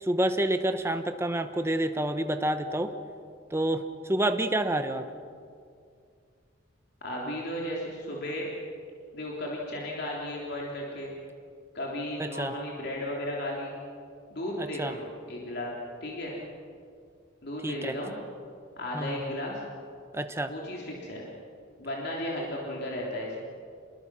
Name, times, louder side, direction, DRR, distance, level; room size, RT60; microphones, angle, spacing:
voice 1, 0.0-2.9 3.5-5.0 12.2-12.5 14.6-14.9 17.6-17.9 18.9-19.3 20.1-20.5, right 1 dB, 15° right, 7 dB, 1.1 m, -28 dB
voice 2, 7.0-8.5 9.1-11.1 11.7-13.7 14.3-15.7 16.0-16.3 17.4-18.2 18.8-19.6 20.5-21.2 21.8-23.4, left 1 dB, 55° left, -3 dB, 3.5 m, -34 dB
27.5 x 21.5 x 6.3 m, 2.3 s
head